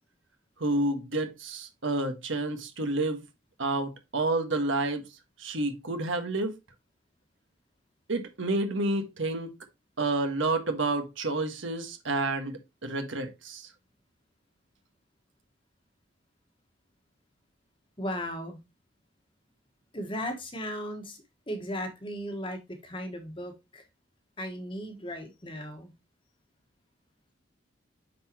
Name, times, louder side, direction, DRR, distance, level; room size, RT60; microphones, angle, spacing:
voice 1, 0.6-3.2 3.6-5.0 5.4-6.5 8.1-9.5 10.0-13.7, right 2 dB, 80° right, 1.5 m, -29 dB
voice 2, 18.0-18.6 19.9-21.2 21.5-23.8 24.4-25.9, equal, 25° left, 1.4 m, -36 dB
9.2 x 4.0 x 2.9 m
head